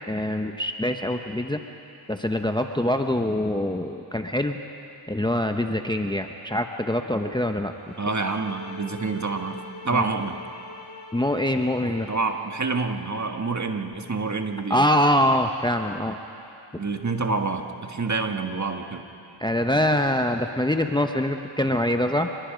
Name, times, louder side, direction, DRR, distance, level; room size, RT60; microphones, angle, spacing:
voice 1, 0.1-1.6 2.1-4.6 5.1-7.7 9.9-10.0 11.1-12.1 14.7-16.2 19.4-22.3, left 1 dB, 10° left, 5 dB, 1.0 m, -24 dB
sound 1, 7.7-12.7, left 2 dB, 65° left, 3.5 m, -43 dB
voice 2, 8.0-9.6 9.9-10.4 12.1-14.8 16.8-19.0, right 4 dB, 35° right, 5 dB, 1.7 m, -27 dB
27.0 x 22.0 x 5.2 m, 2.8 s
cardioid pair, 60°, 49 cm